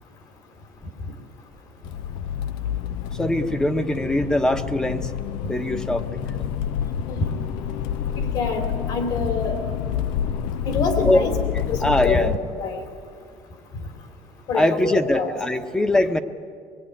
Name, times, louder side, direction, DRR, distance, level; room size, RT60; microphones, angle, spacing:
Accelerating revving vroom, 1.8-12.4, left 9 dB, 80° left, 0.8 m, -28 dB
voice 1, 3.2-5.1 5.5-6.5 11.1-11.2 11.8-12.3 14.5-16.2, left 1 dB, 10° left, 9 dB, 1.1 m, -22 dB
voice 2, 8.2-9.6 10.6-11.4 11.7-12.3 12.5-12.8 14.5-15.3, left 4 dB, 55° left, 7 dB, 3.2 m, -26 dB
24.0 x 22.5 x 9.8 m, 2.1 s
cardioid pair, 155°, 8 cm